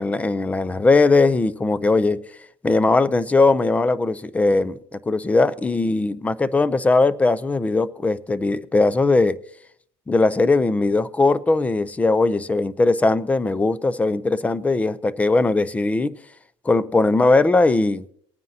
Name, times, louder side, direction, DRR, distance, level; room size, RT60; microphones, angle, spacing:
voice 1, 0.0-2.2 2.6-9.4 10.1-16.2 16.7-18.0, left 3 dB, 10° left, 0.5 m, -19 dB
20.0 x 9.2 x 2.8 m
cardioid pair, 135°, 12 cm